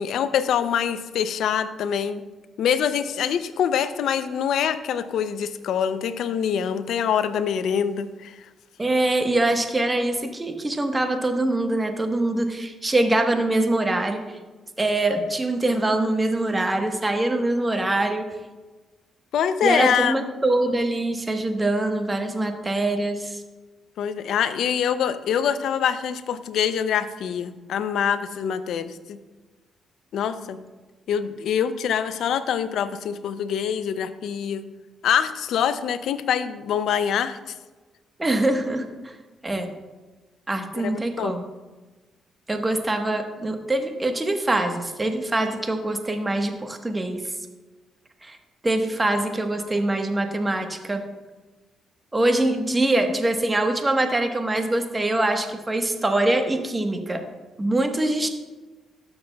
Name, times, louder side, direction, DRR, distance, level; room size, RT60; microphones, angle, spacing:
voice 1, 0.0-2.2 2.6-8.3 19.3-20.2 24.0-29.2 30.1-30.6 31.1-34.6 35.0-37.4 40.8-41.4, left 8 dB, 75° left, 12 dB, 0.4 m, -25 dB
voice 2, 8.8-14.2 14.8-18.3 19.6-23.4 38.2-38.9 39.4-39.7 40.5-41.4 42.5-47.2 48.2-48.4 48.6-51.0 52.1-57.2 57.6-58.3, right 2 dB, 20° right, 6 dB, 1.1 m, -23 dB
12.5 x 6.7 x 2.3 m, 1.2 s
supercardioid pair, 60°, 0 cm